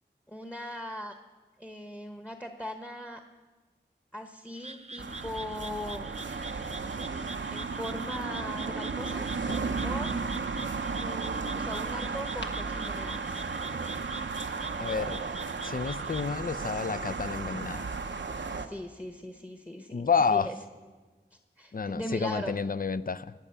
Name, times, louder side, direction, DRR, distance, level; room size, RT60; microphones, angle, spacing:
voice 1, 0.3-1.2 1.6-3.2 4.1-6.1 7.5-9.3 9.8-10.1 11.0-13.4 18.5-20.0 20.3-20.5 21.3-22.5, left 1 dB, 10° left, 6 dB, 1.1 m, -39 dB
Frog, 4.5-16.3, right 2 dB, 35° right, 0.8 m, -45 dB
sound 1, 5.0-18.7, right 4 dB, 80° right, 0.7 m, -34 dB
sound 2, 9.0-10.1 12.0-13.2 14.4-15.3, left 2 dB, 75° left, 1.4 m, -47 dB
voice 2, 14.8-15.2 15.6-17.9 19.9-20.5 21.7-23.3, left 5 dB, 50° left, 16 dB, 0.6 m, -29 dB
19.0 x 8.6 x 6.8 m, 1.3 s
wide cardioid pair, 40°, 19 cm